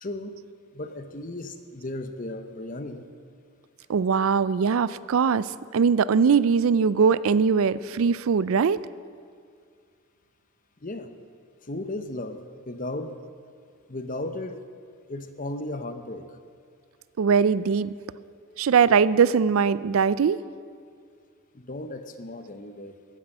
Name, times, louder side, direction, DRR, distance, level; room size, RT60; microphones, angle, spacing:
voice 1, 0.0-0.3 0.7-3.1 10.8-11.1 11.7-13.1 13.9-14.6 15.1-16.3 21.5-23.0, left 1 dB, 40° left, 8 dB, 0.8 m, -35 dB
voice 2, 3.9-5.4 5.7-8.8 17.2-17.9 18.6-20.4, right 6 dB, 70° right, 17 dB, 0.4 m, -21 dB
15.0 x 10.0 x 6.6 m, 2.1 s
head